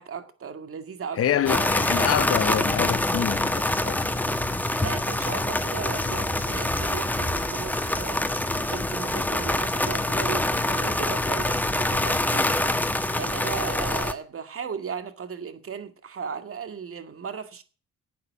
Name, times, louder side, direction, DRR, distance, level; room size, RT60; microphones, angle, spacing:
voice 1, 0.0-1.2 4.8-8.2 8.7-12.7 13.2-17.6, right 6 dB, 45° right, 2.2 m, -36 dB
voice 2, 1.2-4.0, left 10 dB, 50° left, 0.9 m, -26 dB
sound 1, 1.5-14.1, left 1 dB, 5° left, 1.2 m, -25 dB
11.5 x 8.7 x 8.3 m
cardioid pair, 90°, 30 cm